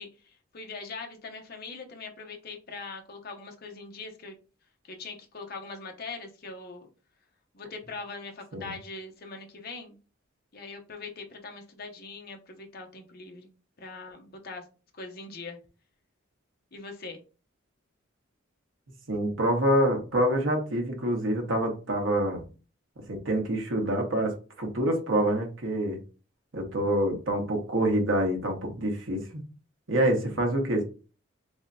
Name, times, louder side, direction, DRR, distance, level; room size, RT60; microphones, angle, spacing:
voice 1, 0.0-4.3 4.8-6.9 7.5-10.0 10.5-13.5 13.8-14.6 14.9-15.6 16.7-17.2, left 3 dB, 50° left, 3 dB, 0.7 m, -41 dB
voice 2, 19.1-22.4 23.1-24.3 24.6-26.0 26.5-29.4 29.9-30.8, right 1 dB, 75° right, 2 dB, 1.1 m, -26 dB
3.5 x 3.1 x 2.6 m, 0.34 s
head